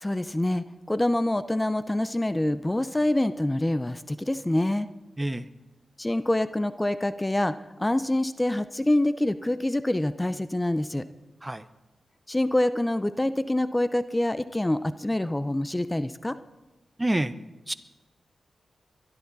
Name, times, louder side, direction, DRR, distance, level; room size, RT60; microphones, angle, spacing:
voice 1, 0.0-4.9 6.0-7.5 7.8-11.0 12.3-16.4, left 1 dB, 20° left, 13 dB, 0.6 m, -26 dB
voice 2, 17.0-17.3 17.7-17.8, right 1 dB, 20° right, 13 dB, 0.7 m, -27 dB
22.5 x 13.0 x 4.1 m, 1.0 s
cardioid pair, 50°, 0 cm